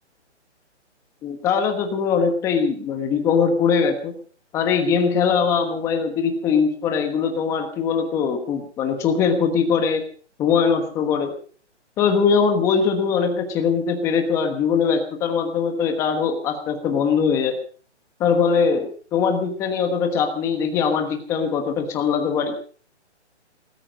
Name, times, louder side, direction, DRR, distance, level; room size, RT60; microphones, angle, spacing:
voice 1, 1.2-4.1 4.5-10.0 10.4-11.3 12.0-17.6 18.2-22.6, left 6 dB, 10° left, 6 dB, 1.3 m, -21 dB
19.0 x 13.5 x 5.2 m, 0.43 s
hypercardioid pair, 170°, 35 cm